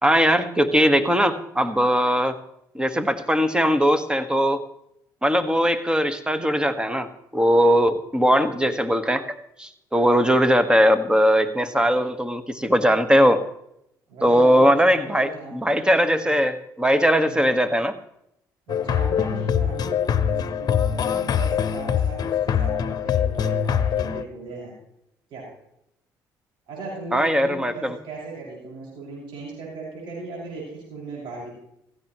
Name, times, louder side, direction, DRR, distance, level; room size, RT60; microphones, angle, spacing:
voice 1, 0.0-2.4 2.7-4.6 5.2-9.3 9.6-13.4 14.2-18.0 27.1-27.9, equal, 10° right, 10 dB, 1.6 m, -20 dB
voice 2, 14.1-15.6 17.3-17.5 18.7-24.8 25.3-25.4 26.7-31.5, right 3 dB, 65° right, -4 dB, 6.2 m, -37 dB
sound 1, 18.7-24.2, left 8 dB, 50° left, 1.0 m, -23 dB
16.5 x 15.5 x 3.1 m, 0.77 s
supercardioid pair, 65°, 9 cm